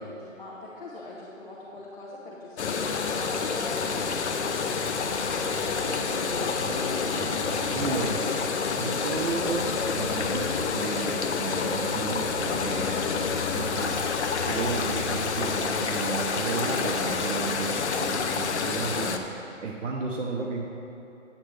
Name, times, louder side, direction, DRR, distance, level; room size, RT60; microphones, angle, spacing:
voice 1, 0.0-5.8 6.1-8.0, left 2 dB, 40° left, -5 dB, 1.1 m, -42 dB
sound 1, 2.6-19.2, left 5 dB, 60° left, 0.6 m, -28 dB
sound 2, 4.6-8.9, right 1 dB, 15° right, 0.8 m, -40 dB
voice 2, 7.7-8.3 8.8-14.1 14.4-20.6, right 4 dB, 65° right, -1 dB, 1.0 m, -33 dB
8.5 x 8.5 x 3.3 m, 2.9 s
hypercardioid pair, 170°, 39 cm